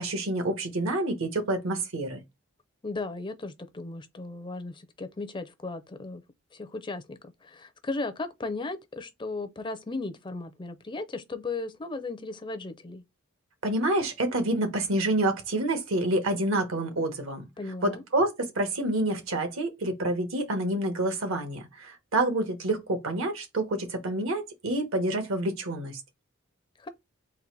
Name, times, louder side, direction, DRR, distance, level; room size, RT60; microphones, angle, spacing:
voice 1, 0.0-2.2 13.6-17.5 17.8-26.0, right 1 dB, 75° right, 1.2 m, -28 dB
voice 2, 2.8-6.2 6.5-13.0 17.6-18.0 26.8-26.9, left 3 dB, 20° left, 0.4 m, -36 dB
4.0 x 2.5 x 4.5 m
head